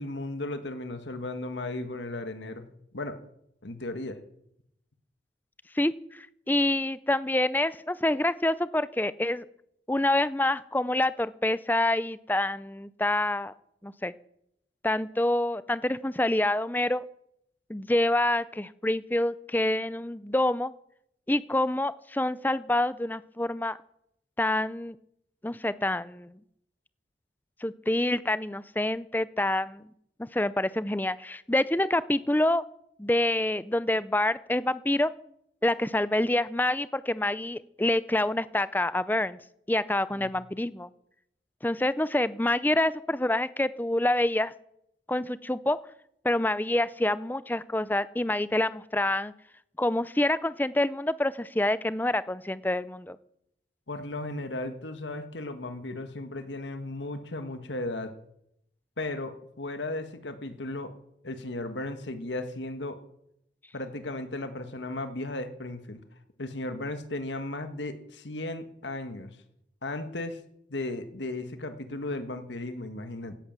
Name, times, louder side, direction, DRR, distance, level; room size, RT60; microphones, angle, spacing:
voice 1, 0.0-2.6 2.9-3.2 3.6-4.2 40.2-40.3 53.9-58.1 59.0-60.9 61.2-63.0 63.7-66.0 66.4-69.4 69.8-70.4 70.7-73.4, left 2 dB, 80° left, 8 dB, 1.7 m, -35 dB
voice 2, 5.7-9.5 9.9-13.5 13.8-14.1 14.8-17.0 17.7-20.7 21.3-23.8 24.4-24.9 25.4-26.4 27.6-29.9 30.2-32.6 33.0-35.1 35.6-39.4 39.7-40.9 41.6-44.5 45.1-45.8 46.2-49.3 49.8-53.2, left 1 dB, 10° left, 16 dB, 0.5 m, -27 dB
17.0 x 11.0 x 7.5 m, 0.75 s
head